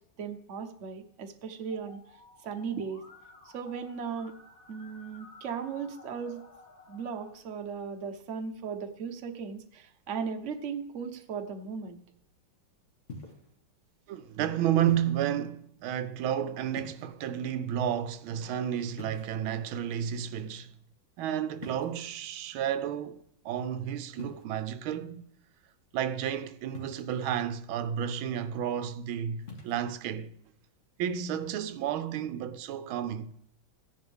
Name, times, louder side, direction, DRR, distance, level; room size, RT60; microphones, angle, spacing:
voice 1, 0.2-2.0 2.4-3.0 3.5-4.4 4.7-6.4 6.9-12.0, right 6 dB, 45° right, 1.1 m, -37 dB
Musical instrument, 1.7-7.3, left 3 dB, 60° left, 2.7 m, -54 dB
sound 1, 13.1-13.5 14.9-15.3 16.7-17.3 19.0-19.7 21.6-22.1 24.2-24.4 26.7-27.3 29.4-29.8, left 2 dB, 40° left, 1.9 m, -45 dB
voice 2, 14.1-20.7 21.2-25.2 25.9-30.3 31.0-33.3, right 10 dB, 85° right, 1.5 m, -31 dB
15.0 x 10.0 x 3.5 m
omnidirectional pair, 2.2 m